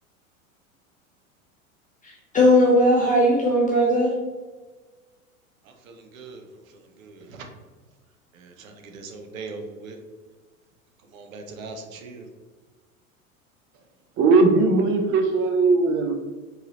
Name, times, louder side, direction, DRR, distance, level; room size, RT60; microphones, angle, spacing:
voice 1, 2.0-4.1, equal, 20° left, 0.9 m, -18 dB
voice 2, 5.6-7.5 8.3-10.0 11.1-12.3, right 3 dB, 65° right, 0.8 m, -41 dB
voice 3, 14.2-16.1, right 3 dB, 30° right, 0.6 m, -19 dB
4.5 x 3.2 x 3.0 m
figure-of-eight pair, 90°, 43 cm